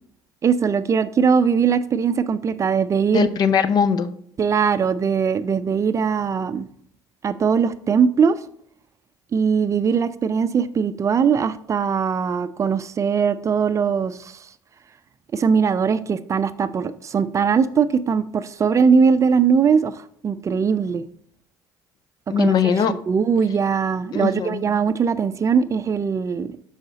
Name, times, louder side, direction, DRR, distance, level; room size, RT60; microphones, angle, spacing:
voice 1, 0.4-3.3 4.4-6.7 7.2-8.4 9.3-14.3 15.3-20.0 20.2-21.0 22.3-22.5 22.9-26.6, right 6 dB, 35° right, 0.4 m, -20 dB
voice 2, 3.1-4.1 22.3-22.9 24.1-24.6, left 7 dB, 50° left, 0.6 m, -20 dB
6.6 x 4.9 x 4.1 m
hypercardioid pair, 75°, 9 cm